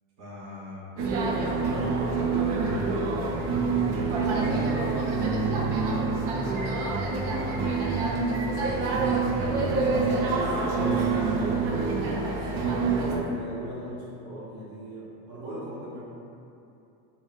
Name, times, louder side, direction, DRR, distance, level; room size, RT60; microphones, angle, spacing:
voice 1, 0.2-0.8 2.1-5.3 6.3-6.9 8.5-10.0, equal, 55° right, -6 dB, 0.9 m, -39 dB
sound 1, 1.0-13.2, right 4 dB, 85° right, 0.6 m, -26 dB
voice 2, 7.3-7.6 10.3-16.0, right 1 dB, 25° right, -8 dB, 0.4 m, -40 dB
3.6 x 2.1 x 2.2 m, 2.7 s
cardioid pair, 145°, 44 cm